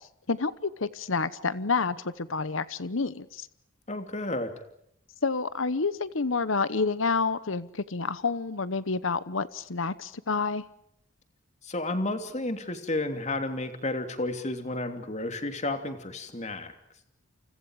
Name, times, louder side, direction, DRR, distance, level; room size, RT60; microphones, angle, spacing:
voice 1, 0.3-3.5 5.2-10.6, left 4 dB, 70° left, 15 dB, 1.0 m, -29 dB
voice 2, 3.9-4.5 11.6-16.7, left 2 dB, 35° left, 7 dB, 3.0 m, -32 dB
29.5 x 29.5 x 4.9 m, 0.74 s
head